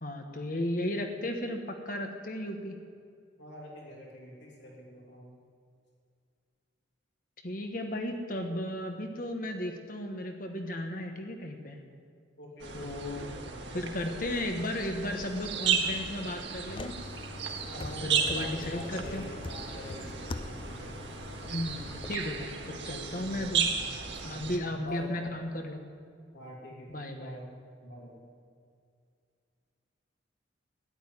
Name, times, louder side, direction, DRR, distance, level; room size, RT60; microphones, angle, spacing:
voice 1, 0.0-2.8 7.4-11.8 12.7-13.3 13.7-16.9 17.7-19.3 21.5-23.7 24.2-25.8 26.9-27.4, left 1 dB, 45° left, 4 dB, 1.3 m, -35 dB
voice 2, 3.4-5.3 12.4-14.2 17.7-21.0 23.1-24.0 24.3-25.3 26.3-27.5 27.8-28.2, left 1 dB, 65° left, -2 dB, 2.7 m, -46 dB
sound 1, 12.6-24.6, right 6 dB, 70° right, 1.8 m, -35 dB
sound 2, 16.7-22.1, left 2 dB, 25° left, 0.4 m, -43 dB
13.5 x 10.5 x 10.0 m, 2.3 s
head